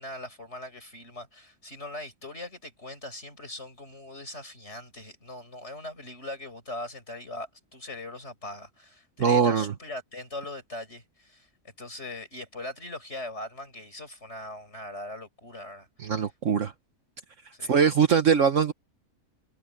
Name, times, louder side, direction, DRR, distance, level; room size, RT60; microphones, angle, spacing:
voice 1, 0.0-11.5 11.8-15.9 17.5-17.8, left 1 dB, 50° left, 6.9 m, -40 dB
voice 2, 9.2-9.7 16.0-16.7 17.7-18.7, right 6 dB, 60° right, 1.4 m, -22 dB
omnidirectional pair, 1.5 m